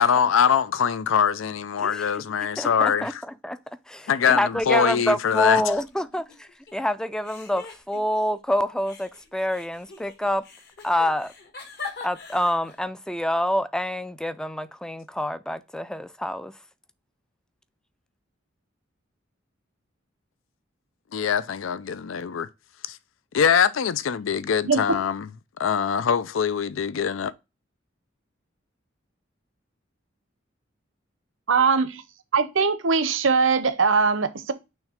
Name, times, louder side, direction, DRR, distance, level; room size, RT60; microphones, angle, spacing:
voice 1, 0.0-3.2 4.1-5.6 21.1-22.5 22.9-23.0 23.3-25.3 25.6-27.3, left 7 dB, 85° left, 0.5 m, -23 dB
voice 2, 1.8-2.1 2.6-3.1 3.4-3.6 3.9-10.4 10.8-11.3 12.0-16.5, left 1 dB, 5° left, 0.3 m, -27 dB
sound 1, 4.4-5.0 5.3-6.7 7.2-8.4 8.8-12.9, left 4 dB, 55° left, 1.4 m, -43 dB
voice 3, 31.5-32.0 32.3-34.5, right 5 dB, 80° right, 0.8 m, -21 dB
6.2 x 3.3 x 5.0 m
head